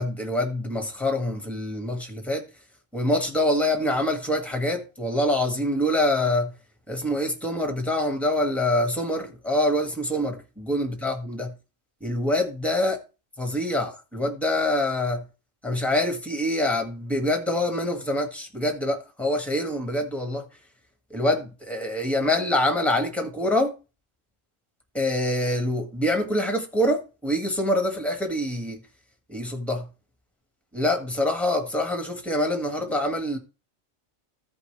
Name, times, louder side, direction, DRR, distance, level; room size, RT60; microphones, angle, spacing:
voice 1, 0.0-2.5 2.9-6.5 6.9-11.5 12.0-13.0 13.4-15.2 15.6-20.5 21.1-23.7 24.9-28.8 29.3-29.9 30.7-33.4, left 1 dB, ahead, 1.6 m, -25 dB
15.0 x 5.2 x 3.2 m
omnidirectional pair, 1.3 m